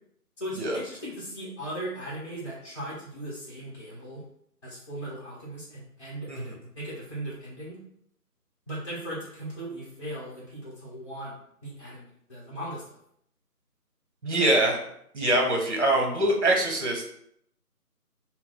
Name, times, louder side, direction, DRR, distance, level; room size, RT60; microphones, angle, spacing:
voice 1, 0.4-4.2 4.6-7.8 8.7-11.3 11.6-13.0, right 1 dB, 20° left, -10 dB, 1.2 m, -38 dB
voice 2, 14.2-14.8 15.1-17.0, right 1 dB, 45° right, 0 dB, 1.2 m, -24 dB
3.7 x 2.3 x 3.9 m, 0.71 s
figure-of-eight pair, 160°, 47 cm